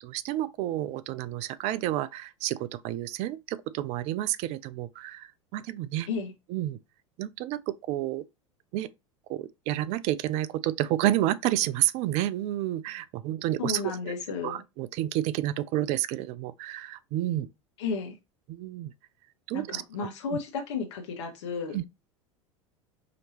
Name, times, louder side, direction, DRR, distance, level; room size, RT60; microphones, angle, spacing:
voice 1, 0.0-6.1 6.5-6.8 7.2-8.2 8.7-8.9 9.3-14.1 14.4-17.5 18.5-18.9 19.5-19.8 20.3-20.4 21.7-21.8, right 14 dB, 45° right, 0.4 m, -30 dB
voice 2, 13.6-14.6 17.8-18.2 19.5-21.8, left 5 dB, 65° left, 1.2 m, -33 dB
5.0 x 3.0 x 2.8 m
figure-of-eight pair, 80°, 16 cm